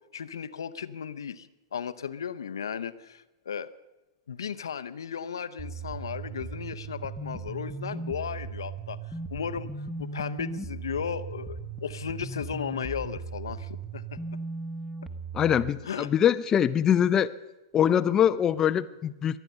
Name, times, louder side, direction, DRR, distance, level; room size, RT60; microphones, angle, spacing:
voice 1, 0.1-1.5 1.7-3.7 4.3-9.0 9.3-9.7 10.0-14.2 15.8-16.1, left 7 dB, 75° left, 12 dB, 0.7 m, -35 dB
sound 1, 5.6-15.7, right 4 dB, 5° right, 1.1 m, -37 dB
voice 2, 15.3-17.3 17.7-19.4, left 9 dB, 25° left, 12 dB, 0.4 m, -23 dB
23.5 x 9.1 x 5.5 m, 1.1 s
figure-of-eight pair, 105°, 2 cm